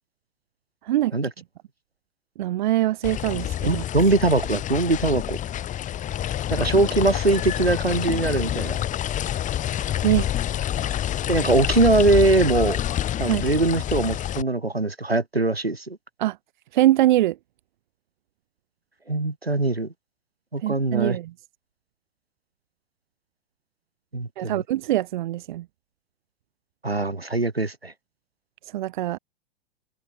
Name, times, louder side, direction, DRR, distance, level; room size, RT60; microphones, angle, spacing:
voice 1, 2.4-3.8 10.0-10.3 13.3-13.4 16.2-16.4 16.7-17.4 20.6-21.3 24.4-25.6 28.7-29.2, right 14 dB, 50° right, 2.1 m, -23 dB
sound 1, 3.0-14.4, left 11 dB, 25° left, 5.6 m, -27 dB
voice 2, 3.7-5.4 6.5-8.8 11.3-12.8 13.2-16.0 19.1-19.9 20.5-21.2 24.1-24.6 26.8-27.9, right 2 dB, 85° right, 6.1 m, -22 dB
figure-of-eight pair, 100°, 30 cm